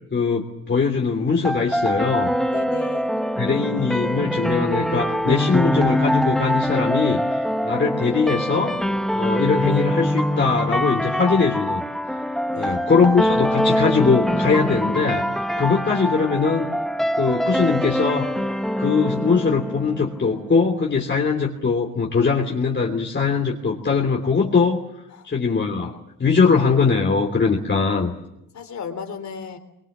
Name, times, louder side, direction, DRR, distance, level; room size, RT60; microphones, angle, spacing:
voice 1, 0.1-2.3 3.4-8.8 9.1-11.8 12.6-16.7 17.1-18.3 18.8-24.8 25.2-28.1, left 5 dB, 35° left, 0 dB, 3.2 m, -21 dB
sound 1, 1.4-20.4, equal, ahead, 1.1 m, -24 dB
voice 2, 2.5-3.1 12.5-12.8 25.1-25.3 28.5-29.6, left 6 dB, 60° left, 7 dB, 3.6 m, -34 dB
26.5 x 24.0 x 7.4 m, 0.85 s
cardioid pair, 100°, 31 cm